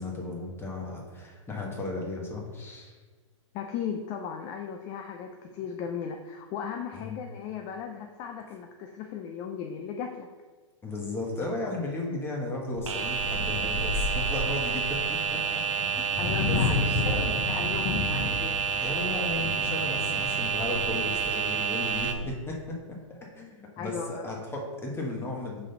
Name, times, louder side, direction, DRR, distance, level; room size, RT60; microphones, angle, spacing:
voice 1, 0.0-2.9 6.9-7.2 10.8-15.6 15.9-16.0 16.4-17.3 18.8-23.0 23.3-25.6, left 2 dB, 15° left, -1 dB, 1.5 m, -35 dB
voice 2, 3.5-10.3 16.2-18.8 23.8-24.3, left 7 dB, 35° left, 4 dB, 0.5 m, -37 dB
sound 1, 12.7-22.3, left 2 dB, 70° left, 2.0 m, -33 dB
sound 2, 12.9-22.1, right 6 dB, 70° right, 0.7 m, -29 dB
5.3 x 3.7 x 5.7 m, 1.4 s
hypercardioid pair, 125°, 17 cm